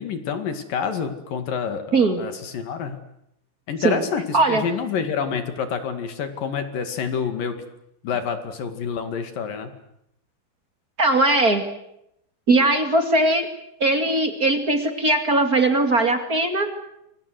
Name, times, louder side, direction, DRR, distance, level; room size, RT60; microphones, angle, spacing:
voice 1, 0.0-3.0 3.7-7.6 8.0-9.7, left 6 dB, 55° left, 8 dB, 3.5 m, -28 dB
voice 2, 11.0-11.6 12.5-13.5 13.8-16.7, right 2 dB, 30° right, 7 dB, 1.7 m, -19 dB
29.5 x 23.5 x 7.9 m, 0.79 s
omnidirectional pair, 5.1 m